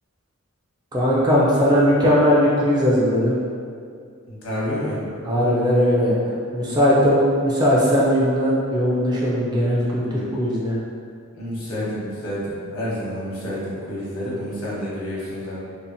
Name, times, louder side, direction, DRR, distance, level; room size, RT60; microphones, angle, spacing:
voice 1, 0.9-3.4 5.2-6.2 6.5-10.7, equal, 20° right, -6 dB, 0.3 m, -19 dB
voice 2, 4.2-5.0 10.0-10.3 11.3-15.6, equal, 80° left, -7 dB, 0.9 m, -29 dB
2.7 x 2.1 x 2.6 m, 2.2 s
head